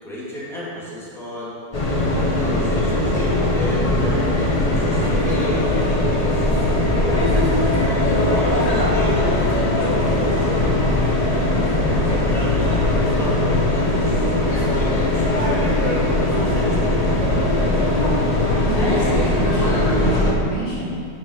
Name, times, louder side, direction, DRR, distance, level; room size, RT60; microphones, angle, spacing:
voice 1, 0.0-1.5 2.2-6.7 8.3-11.1 11.9-17.0, equal, ahead, -8 dB, 2.6 m, -32 dB
sound 1, 1.7-20.3, left 1 dB, 25° left, 1.3 m, -19 dB
voice 2, 18.6-21.0, right 1 dB, 85° left, -7 dB, 3.5 m, -27 dB
9.5 x 6.5 x 6.6 m, 2.4 s
omnidirectional pair, 1.9 m